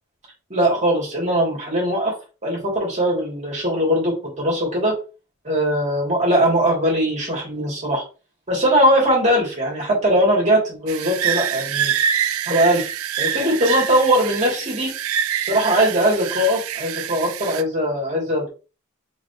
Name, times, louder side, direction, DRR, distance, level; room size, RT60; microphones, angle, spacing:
voice 1, 0.5-2.1 2.4-4.9 5.4-8.0 8.5-11.9 12.5-12.9 13.2-14.9 15.4-18.5, equal, 35° right, -3 dB, 2.4 m, -20 dB
sound 1, 10.9-17.6, right 9 dB, 90° right, 0.4 m, -25 dB
4.4 x 4.0 x 2.9 m, 0.33 s
head